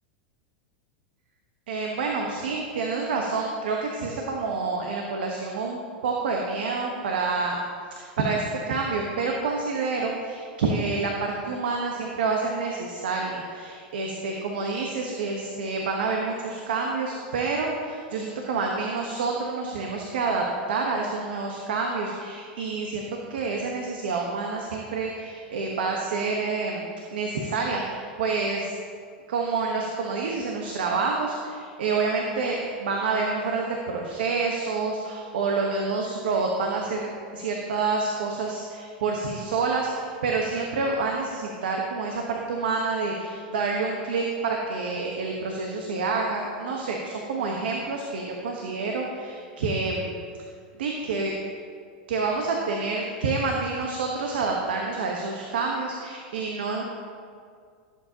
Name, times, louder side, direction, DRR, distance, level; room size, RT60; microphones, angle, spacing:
voice 1, 1.7-7.6 8.0-23.0 23.3-26.8 27.1-28.7 29.3-50.1 50.8-51.3 52.1-56.8, right 4 dB, 80° right, 0 dB, 1.1 m, -28 dB
16.5 x 7.6 x 2.9 m, 2.2 s
hypercardioid pair, 110°, 5 cm